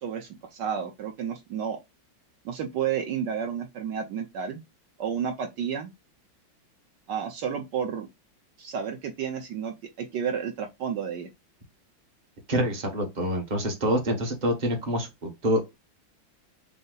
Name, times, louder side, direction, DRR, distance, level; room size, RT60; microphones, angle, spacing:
voice 1, 0.0-1.8 2.4-4.6 5.0-5.9 7.1-8.1 8.6-11.3, right 7 dB, 70° right, 1.2 m, -31 dB
voice 2, 12.5-15.7, equal, 30° right, 0.9 m, -26 dB
5.2 x 2.0 x 3.8 m
omnidirectional pair, 2.1 m